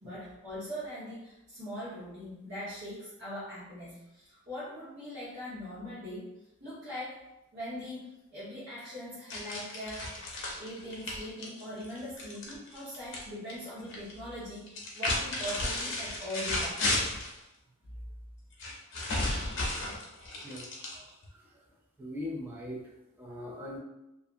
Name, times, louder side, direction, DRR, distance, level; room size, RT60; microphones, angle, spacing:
voice 1, 0.0-6.3 6.6-7.2 7.5-16.8, equal, 50° right, -11 dB, 1.1 m, -41 dB
sound 1, 9.3-13.2 13.5-14.1 14.7-17.4 18.6-21.3, left 2 dB, 55° left, 0.6 m, -33 dB
voice 2, 20.4-20.7 20.9-21.6 22.0-23.8, left 1 dB, 10° right, -4 dB, 0.4 m, -42 dB
2.6 x 2.4 x 2.5 m, 0.93 s
head